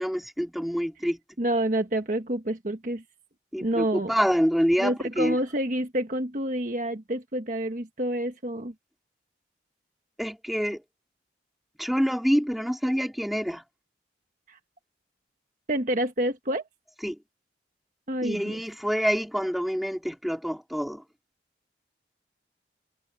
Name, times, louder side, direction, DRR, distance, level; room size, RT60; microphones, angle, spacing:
voice 1, 0.0-1.2 3.5-5.4 10.2-10.8 11.8-13.6 17.0-17.2 18.2-21.0, equal, ahead, 4.1 m, -26 dB
voice 2, 1.4-3.0 3.6-4.1 4.8-8.7 14.5-14.6 15.7-16.6 18.1-18.6, right 1 dB, 45° right, 1.5 m, -28 dB
head